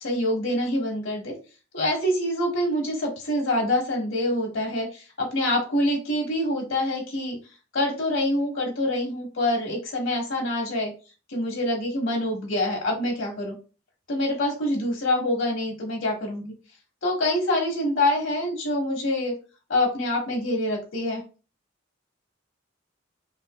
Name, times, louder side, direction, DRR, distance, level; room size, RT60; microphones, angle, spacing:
voice 1, 0.0-1.3 1.7-7.4 7.7-10.9 11.3-13.6 14.1-16.5 17.0-19.3 19.7-21.2, left 1 dB, 85° left, -1 dB, 1.4 m, -26 dB
5.3 x 2.0 x 2.2 m, 0.34 s
head